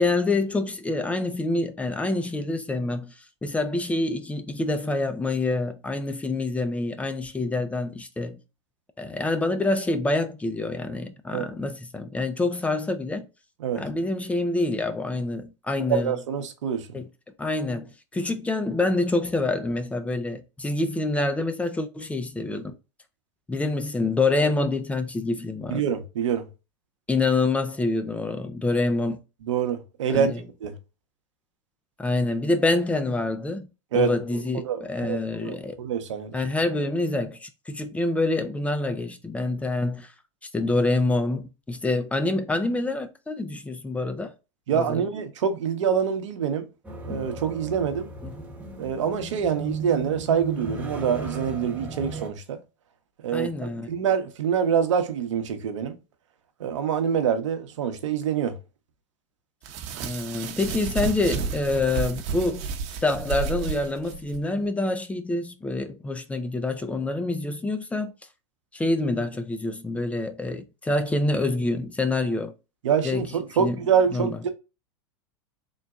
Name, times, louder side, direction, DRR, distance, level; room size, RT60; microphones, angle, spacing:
voice 1, 0.0-3.1 3.4-8.4 9.0-13.3 13.8-16.2 16.9-17.1 17.4-22.8 23.5-25.9 27.1-29.2 30.1-30.4 32.0-33.7 33.9-35.8 36.3-40.1 40.5-44.3 44.7-45.1 48.2-48.4 53.3-53.9 60.0-62.7 63.0-68.1 68.7-72.5 73.0-73.3 73.6-73.8 74.1-74.4, left 2 dB, 10° left, 0.4 m, -26 dB
voice 2, 15.9-16.9 25.7-26.5 29.5-30.3 30.6-30.7 33.9-34.2 34.5-36.4 44.7-46.7 47.0-48.1 48.8-52.6 53.2-53.5 53.9-56.0 56.6-58.5 72.8-74.5, right 7 dB, 80° right, 0.8 m, -25 dB
sound 1, 46.8-52.3, right 2 dB, 10° right, 1.0 m, -36 dB
sound 2, 59.6-64.4, right 5 dB, 50° right, 0.8 m, -31 dB
3.9 x 2.2 x 3.6 m
hypercardioid pair, 115°, 15 cm